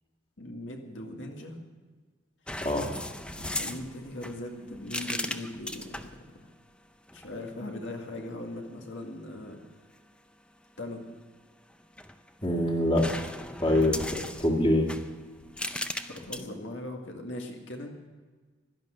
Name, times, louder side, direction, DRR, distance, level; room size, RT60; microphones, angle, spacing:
voice 1, 0.4-1.6 3.4-6.5 7.1-9.6 10.8-11.0 16.1-17.9, left 1 dB, 75° left, 2 dB, 1.9 m, -39 dB
sound 1, 2.5-6.2 7.1-7.5 11.7-12.5 13.0-16.4, left 1 dB, 5° left, 0.5 m, -37 dB
voice 2, 2.6-3.0 12.4-13.1 13.6-14.9, left 1 dB, 25° left, 1 dB, 2.0 m, -25 dB
16.5 x 12.0 x 6.4 m, 1.4 s
head